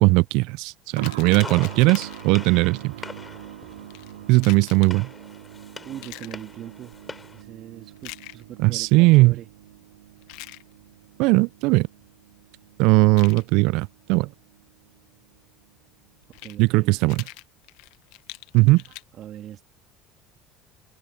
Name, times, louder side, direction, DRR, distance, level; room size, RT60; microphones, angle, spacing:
voice 1, 0.0-2.9 4.3-5.1 8.6-9.3 11.2-11.9 12.8-14.3 16.6-17.2 18.5-18.8, right 24 dB, 70° right, 0.3 m, -18 dB
sound 1, 0.9-2.4 3.9-5.0 6.0-6.4 8.0-8.4 10.2-10.6 13.0-13.4 16.2-16.5 17.0-19.0, left 22 dB, 70° left, 1.2 m, -42 dB
sound 2, 0.9-15.4 15.6-15.7 16.7-16.8, right 13 dB, 90° right, 3.7 m, -44 dB
Gunshot gunfire, 1.4-7.4, left 4 dB, 20° left, 5.0 m, -42 dB
voice 2, 5.8-6.9 7.3-9.5 16.4-16.9 19.1-19.6, right 11 dB, 55° right, 3.0 m, -40 dB
hypercardioid pair, 75°, 0 cm